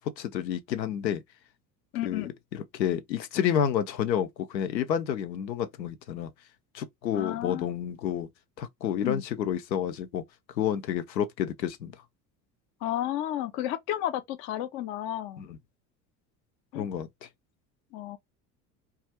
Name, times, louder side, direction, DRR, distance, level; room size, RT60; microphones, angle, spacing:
voice 1, 0.2-1.2 2.0-2.2 2.5-6.3 6.7-8.3 8.6-10.2 10.6-11.9 15.4-15.5 16.7-17.1, left 9 dB, 85° left, 0.6 m, -29 dB
voice 2, 1.9-2.3 7.1-7.7 9.0-9.2 12.8-15.4 16.7-16.9 17.9-18.2, left 12 dB, 35° left, 0.3 m, -32 dB
2.3 x 2.0 x 2.7 m
figure-of-eight pair, 70°, 50 cm